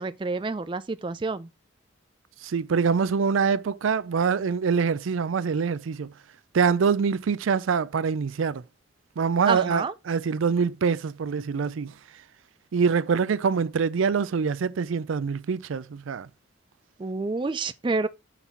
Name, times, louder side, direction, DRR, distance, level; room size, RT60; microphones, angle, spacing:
voice 1, 0.0-1.5 9.5-9.9 17.0-18.1, right 3 dB, 25° right, 0.3 m, -28 dB
voice 2, 2.4-6.1 6.5-8.6 9.2-11.9 12.7-16.3, right 5 dB, 90° right, 0.4 m, -25 dB
5.9 x 4.1 x 4.4 m
head